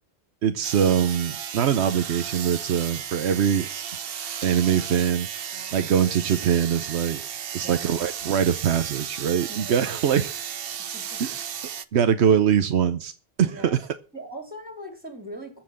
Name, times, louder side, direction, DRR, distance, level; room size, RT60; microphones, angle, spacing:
voice 1, 0.4-3.7 4.4-5.3 5.7-7.2 7.5-10.3 11.2-11.4 11.9-13.1 13.4-13.9, right 8 dB, 90° right, 9 dB, 1.1 m, -23 dB
sound 1, 0.6-11.8, right 8 dB, 65° right, 1.0 m, -34 dB
voice 2, 7.6-7.9 9.5-9.9 10.8-11.2 13.5-13.8 14.1-15.6, right 1 dB, 10° right, 4 dB, 3.4 m, -40 dB
14.5 x 6.0 x 8.7 m, 0.37 s
omnidirectional pair, 1.1 m